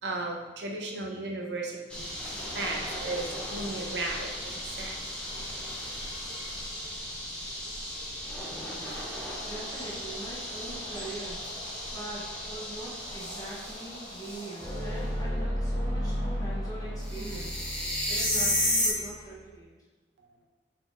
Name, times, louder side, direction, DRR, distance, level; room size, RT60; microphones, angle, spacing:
voice 1, 0.0-2.1 2.5-5.0 20.2-20.3, right 2 dB, 75° right, 1 dB, 0.6 m, -35 dB
sound 1, 1.9-14.9 17.0-18.9, left 1 dB, 5° left, 0.7 m, -34 dB
sound 2, 8.6-17.0, left 1 dB, 90° left, 1.3 m, -49 dB
voice 2, 9.4-11.4 11.9-17.6 18.1-19.7, right 2 dB, 20° left, -8 dB, 1.3 m, -42 dB
sound 3, 14.6-19.5, equal, 25° right, 0.9 m, -33 dB
4.1 x 3.0 x 3.5 m, 1.3 s
head